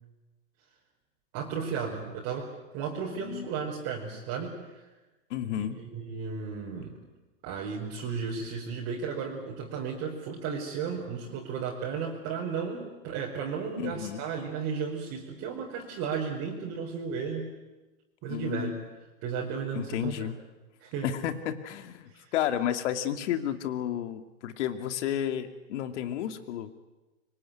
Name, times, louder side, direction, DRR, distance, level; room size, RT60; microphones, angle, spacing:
voice 1, 1.3-4.8 5.6-7.0 7.4-17.5 18.2-18.7 19.2-20.3 20.8-21.1 22.1-22.3, right 6 dB, 40° right, -2 dB, 5.0 m, -34 dB
voice 2, 5.3-5.8 13.8-14.2 18.3-18.8 19.7-20.4 21.0-26.8, left 10 dB, 60° left, 8 dB, 2.6 m, -32 dB
25.5 x 24.0 x 9.4 m, 1.1 s
hypercardioid pair, 135°, 39 cm